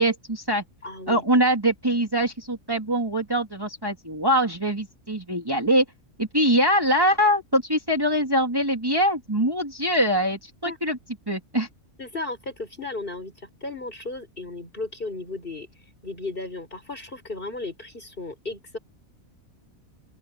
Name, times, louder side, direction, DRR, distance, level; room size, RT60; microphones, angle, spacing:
voice 1, 0.0-0.6 1.1-5.8 6.2-11.0 11.3-11.7, equal, 15° right, 2.6 m, -23 dB
voice 2, 0.8-1.2 10.7-10.8 12.0-13.3 13.6-15.7 16.0-18.8, left 2 dB, 40° left, 5.2 m, -35 dB
open air
omnidirectional pair, 1.4 m